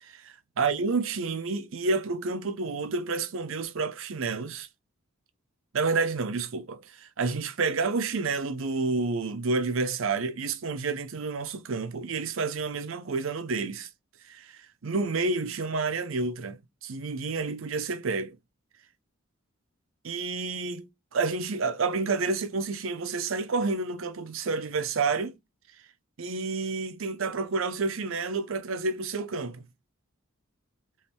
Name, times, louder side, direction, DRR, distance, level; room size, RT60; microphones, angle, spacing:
voice 1, 0.0-4.7 5.7-13.9 14.2-18.4 20.0-25.3 26.2-29.7, right 4 dB, 70° right, 0.6 m, -29 dB
3.5 x 3.1 x 4.4 m
head